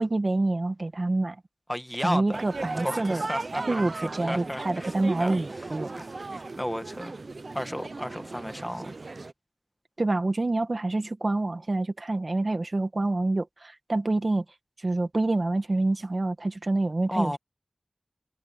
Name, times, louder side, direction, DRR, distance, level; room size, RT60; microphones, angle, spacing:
voice 1, 0.0-1.4 2.0-3.2 3.7-6.0 10.0-14.4 14.8-17.4, right 2 dB, 50° right, 1.7 m, -27 dB
voice 2, 1.7-2.4 2.8-5.7 6.0-7.1 7.5-9.0 17.1-17.4, equal, 10° left, 1.6 m, -34 dB
sound 1, 2.3-9.3, right 3 dB, 70° right, 0.7 m, -36 dB
sound 2, 2.5-9.1, right 3 dB, 90° right, 5.7 m, -51 dB
wide cardioid pair, 65°, 0 cm